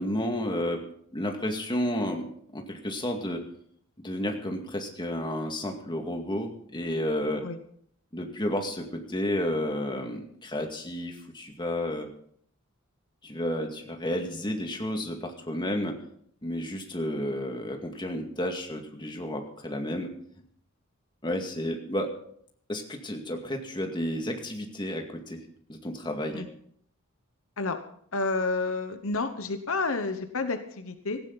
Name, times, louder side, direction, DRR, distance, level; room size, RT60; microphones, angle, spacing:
voice 1, 0.0-3.4 4.0-7.5 8.1-12.1 13.2-16.0 16.4-20.1 21.2-22.1 22.7-25.4 25.7-26.4, left 1 dB, 20° left, 3 dB, 2.1 m, -31 dB
voice 2, 28.1-31.2, left 3 dB, 65° left, 8 dB, 1.1 m, -30 dB
18.0 x 15.5 x 4.1 m, 0.63 s
head